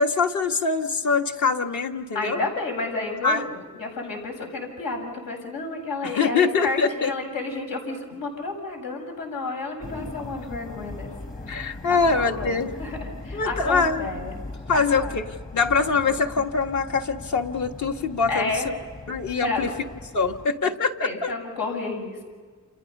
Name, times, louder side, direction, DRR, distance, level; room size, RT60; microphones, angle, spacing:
voice 1, 0.0-2.4 3.2-3.4 6.1-7.1 11.5-12.7 13.3-14.1 14.7-15.3 15.5-18.5 19.1-19.7 20.1-21.3, left 4 dB, 60° left, 3 dB, 1.8 m, -23 dB
voice 2, 2.1-11.1 11.6-14.3 14.7-15.1 18.3-18.7 19.4-19.7 20.6-20.7 21.0-22.2, left 3 dB, 85° left, 2 dB, 7.2 m, -31 dB
sound 1, 9.8-20.5, left 2 dB, 25° left, 1.2 m, -39 dB
30.0 x 28.0 x 5.5 m, 1.5 s
wide cardioid pair, 180°, 34 cm